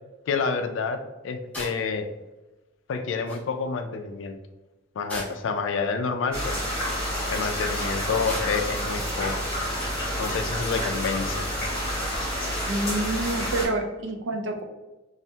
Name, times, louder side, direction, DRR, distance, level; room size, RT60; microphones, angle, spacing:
voice 1, 0.3-2.1 2.9-4.4 5.0-6.6 7.3-9.3 10.2-11.5, left 5 dB, 75° left, 7 dB, 0.3 m, -28 dB
sound 1, 1.5-1.8 2.9-3.0 3.3-3.4 5.1-5.6 7.0-7.4 8.3-8.7 9.8-10.0, equal, 5° left, 0.5 m, -37 dB
sound 2, 6.3-13.7, equal, 30° left, 1.2 m, -29 dB
voice 2, 12.7-14.6, right 2 dB, 70° right, 4 dB, 0.5 m, -28 dB
3.3 x 2.0 x 2.7 m, 1.1 s
head